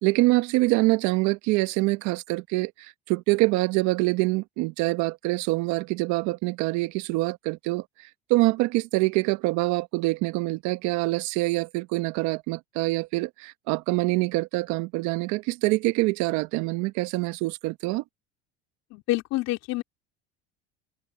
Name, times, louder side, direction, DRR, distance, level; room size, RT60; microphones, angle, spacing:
voice 1, 0.0-7.8 8.3-18.0, right 22 dB, 70° right, 1.2 m, -25 dB
voice 2, 18.9-19.8, left 18 dB, 60° left, 3.0 m, -27 dB
supercardioid pair, 100°, 29 cm